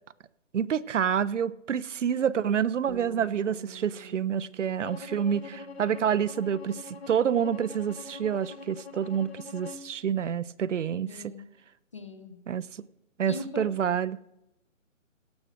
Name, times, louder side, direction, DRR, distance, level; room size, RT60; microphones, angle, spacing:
voice 1, 0.5-11.2 12.5-12.8 13.2-14.2, right 8 dB, 65° right, 0.5 m, -28 dB
Bass guitar, 2.9-9.1, right 5 dB, 30° right, 0.8 m, -50 dB
Bowed string instrument, 4.8-9.9, left 5 dB, 50° left, 1.0 m, -44 dB
voice 2, 11.0-11.4 11.9-12.4 13.3-13.7, left 2 dB, 25° left, 0.6 m, -39 dB
16.5 x 6.3 x 6.1 m
hypercardioid pair, 160°, 40 cm